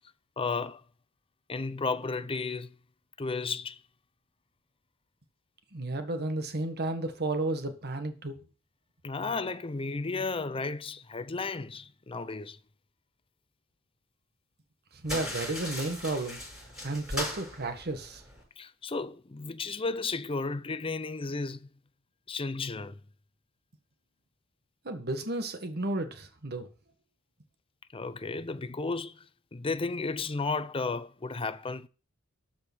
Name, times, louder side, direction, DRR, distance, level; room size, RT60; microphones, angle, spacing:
voice 1, 0.4-0.8 1.5-2.7 3.2-3.8 9.0-12.6 18.6-21.7 22.3-23.0 27.9-29.3 29.5-31.9, left 4 dB, 25° left, 0.6 m, -33 dB
voice 2, 5.7-8.4 14.9-16.4 16.8-18.2 24.8-26.7, right 2 dB, 50° right, 1.7 m, -33 dB
sound 1, 15.0-18.4, left 1 dB, 5° right, 6.2 m, -38 dB
12.5 x 5.2 x 6.3 m
head